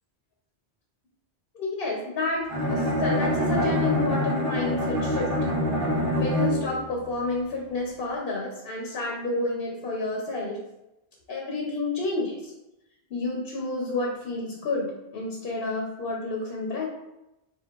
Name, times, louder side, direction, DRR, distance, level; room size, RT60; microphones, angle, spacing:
voice 1, 1.5-5.3 6.1-10.6 11.3-12.5 13.1-16.9, left 2 dB, 65° left, -2 dB, 1.0 m, -30 dB
Bowed string instrument, 2.5-6.9, left 1 dB, 60° right, 1.4 m, -25 dB
4.5 x 3.9 x 2.4 m, 0.93 s
omnidirectional pair, 1.1 m